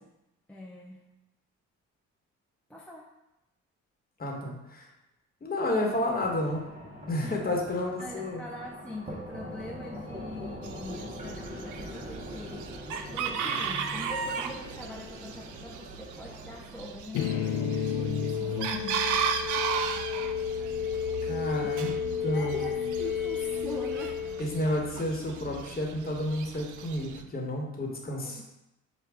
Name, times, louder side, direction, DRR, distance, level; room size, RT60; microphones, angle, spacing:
voice 1, 0.5-1.1 2.7-3.1 7.2-7.6 8.0-19.2 19.6-19.7 21.6-21.7 22.3-24.2 28.0-28.4, left 1 dB, 5° left, -2 dB, 0.5 m, -43 dB
voice 2, 4.2-4.9 5.4-6.7 7.1-8.4 13.4-14.0 21.2-21.9 22.2-22.6 24.4-28.4, left 1 dB, 30° left, -1 dB, 1.1 m, -31 dB
sound 1, 5.6-17.0, equal, 25° right, 0.8 m, -43 dB
Chicken rooster, 10.6-27.2, right 7 dB, 80° right, 0.5 m, -36 dB
sound 2, 17.1-25.1, left 8 dB, 80° left, 0.5 m, -31 dB
6.0 x 2.2 x 3.4 m, 0.92 s
cardioid pair, 90°, 30 cm